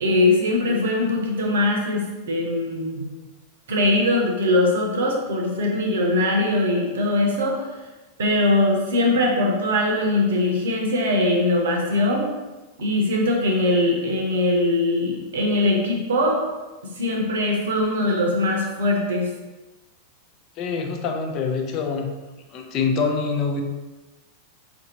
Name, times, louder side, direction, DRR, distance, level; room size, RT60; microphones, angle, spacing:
voice 1, 0.0-3.0 3.7-7.6 8.2-12.3 12.8-16.4 17.0-19.3, left 1 dB, 60° right, 1 dB, 0.8 m, -21 dB
voice 2, 20.6-22.1 22.5-23.6, left 5 dB, 35° left, 3 dB, 0.5 m, -25 dB
4.8 x 2.6 x 2.7 m, 1.1 s
figure-of-eight pair, 90°, 0 cm